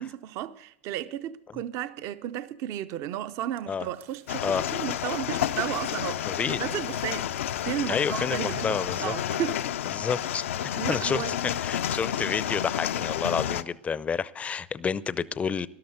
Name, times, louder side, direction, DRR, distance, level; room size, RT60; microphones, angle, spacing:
voice 1, 0.0-7.3 7.6-9.7 10.7-11.3, right 11 dB, 50° right, 0.7 m, -34 dB
sound 1, 3.6-7.4 7.9-9.7 10.1-12.1, right 13 dB, 65° right, 2.0 m, -58 dB
Crumpling crinkling, 3.9-9.1, right 7 dB, 85° right, 5.5 m, -55 dB
sound 2, 4.3-13.6, left 11 dB, 85° left, 0.6 m, -30 dB
voice 2, 6.2-6.6 7.9-9.1 9.9-15.7, left 6 dB, 20° left, 0.5 m, -29 dB
13.0 x 11.5 x 8.0 m
supercardioid pair, 120°, 7 cm